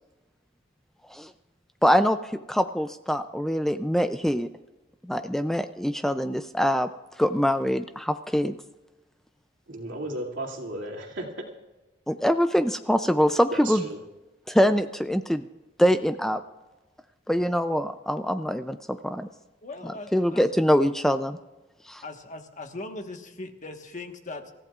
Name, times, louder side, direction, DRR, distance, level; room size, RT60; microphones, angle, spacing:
voice 1, 1.8-4.5 5.1-6.9 7.2-8.5 12.1-13.8 14.5-15.4 15.8-16.4 17.3-19.3 19.8-21.4 21.9-22.0, equal, ahead, 10 dB, 0.4 m, -24 dB
voice 2, 9.7-11.3 13.5-14.0, right 1 dB, 85° right, 0 dB, 2.6 m, -34 dB
voice 3, 19.6-20.4 22.0-24.5, left 2 dB, 40° left, 5 dB, 1.4 m, -39 dB
27.5 x 14.5 x 2.4 m, 1.1 s
head